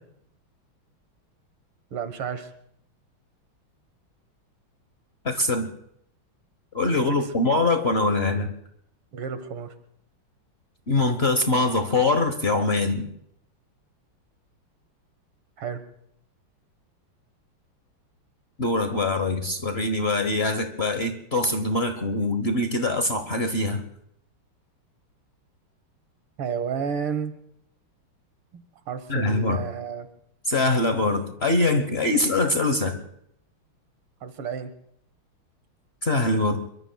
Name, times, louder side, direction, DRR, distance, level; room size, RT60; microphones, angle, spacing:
voice 1, 1.9-2.5 7.0-7.3 9.1-9.7 15.6-15.8 26.4-27.3 28.5-30.1 34.2-34.7, right 6 dB, 90° right, 10 dB, 2.3 m, -31 dB
voice 2, 5.2-5.7 6.7-8.5 10.9-13.1 18.6-23.8 29.1-29.6 30.5-33.0 36.0-36.7, left 2 dB, 40° left, 7 dB, 1.0 m, -23 dB
26.5 x 23.0 x 2.3 m, 0.72 s
omnidirectional pair, 2.3 m